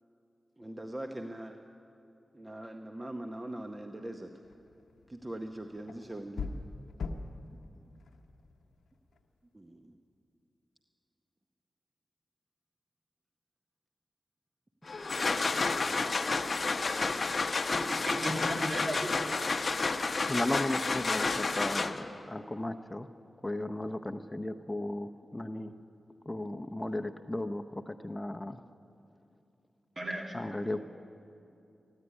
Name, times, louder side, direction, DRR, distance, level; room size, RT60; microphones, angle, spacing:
voice 1, 0.6-1.6 2.3-4.3 5.1-6.5 9.5-9.9, right 1 dB, 30° right, 5 dB, 0.9 m, -41 dB
sound 1, 4.4-9.3, left 4 dB, 90° left, 0.8 m, -43 dB
sound 2, 14.9-22.2, left 3 dB, 55° left, 0.7 m, -30 dB
voice 2, 17.7-19.3 30.0-30.4, right 1 dB, 55° right, 1 dB, 2.4 m, -36 dB
voice 3, 19.9-23.1 23.4-25.7 26.3-28.6 30.3-30.8, left 1 dB, 20° left, 8 dB, 0.6 m, -35 dB
15.0 x 9.8 x 9.7 m, 2.7 s
cardioid pair, 40°, 0 cm